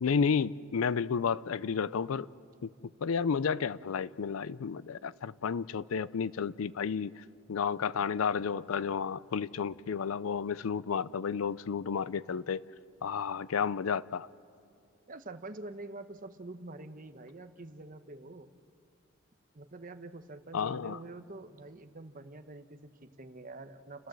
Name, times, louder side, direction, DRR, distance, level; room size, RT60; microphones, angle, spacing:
voice 1, 0.0-2.3 2.6-2.7 3.0-12.6 13.0-14.3 20.5-21.0, left 6 dB, 85° left, 0.5 m, -32 dB
voice 2, 15.1-18.5 19.5-24.1, right 2 dB, 40° right, 1.0 m, -46 dB
30.0 x 14.0 x 7.6 m
head